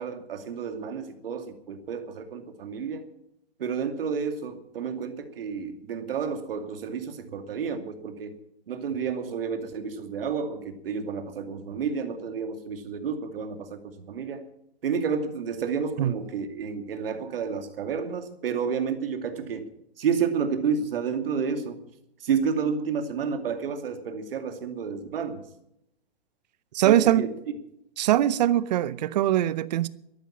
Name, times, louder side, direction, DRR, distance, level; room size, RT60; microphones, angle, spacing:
voice 1, 0.0-3.0 3.6-8.4 8.7-14.4 14.8-19.7 20.0-21.8 22.2-25.4 26.8-27.3, right 6 dB, 65° right, 2.5 m, -30 dB
voice 2, 26.7-27.3 28.0-29.9, right 12 dB, 45° right, 0.8 m, -22 dB
14.0 x 11.5 x 7.3 m
hypercardioid pair, 145°, 31 cm